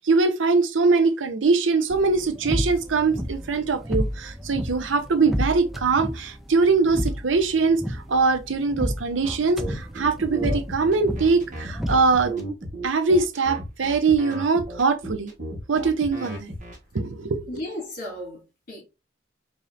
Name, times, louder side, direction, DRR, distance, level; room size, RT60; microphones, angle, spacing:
voice 1, 0.0-12.3 12.8-15.3 15.7-16.5 16.9-17.4, right 4 dB, 85° right, 0.6 m, -22 dB
sound 1, 1.9-12.5, equal, ahead, 0.4 m, -31 dB
sound 2, 9.2-16.8, right 1 dB, 40° right, 1.2 m, -34 dB
voice 2, 17.5-18.8, left 1 dB, 50° left, 2.1 m, -35 dB
5.0 x 2.7 x 2.4 m
head